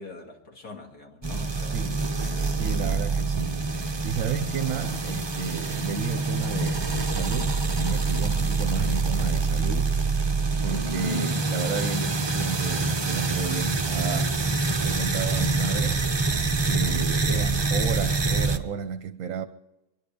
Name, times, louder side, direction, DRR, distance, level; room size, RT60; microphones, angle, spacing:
voice 1, 0.0-2.6 11.0-11.5 17.2-17.5, left 4 dB, 65° left, 3.1 m, -43 dB
sound 1, 1.2-18.6, right 3 dB, 30° right, 0.5 m, -26 dB
voice 2, 1.7-16.1 16.6-19.5, right 7 dB, 60° right, 1.0 m, -32 dB
25.0 x 11.0 x 5.1 m
omnidirectional pair, 1.8 m